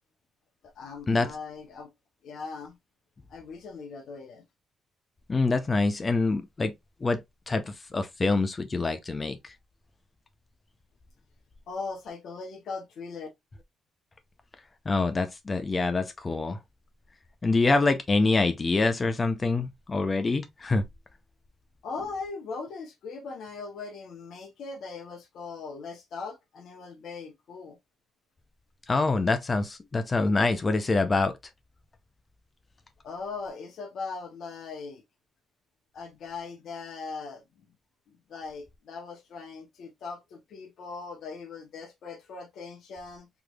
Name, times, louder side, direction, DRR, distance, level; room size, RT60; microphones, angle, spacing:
voice 1, 0.7-1.9 2.2-2.8 3.3-4.4 11.7-13.3 21.8-27.8 33.0-35.0 35.9-37.4 38.1-43.3, left 4 dB, 70° left, 0.9 m, -39 dB
voice 2, 5.3-6.7 7.0-7.2 7.5-9.4 14.9-16.6 17.4-20.8 28.9-31.3, left 3 dB, 30° left, 0.6 m, -25 dB
3.6 x 3.1 x 2.3 m
cardioid pair, 90°, 0 cm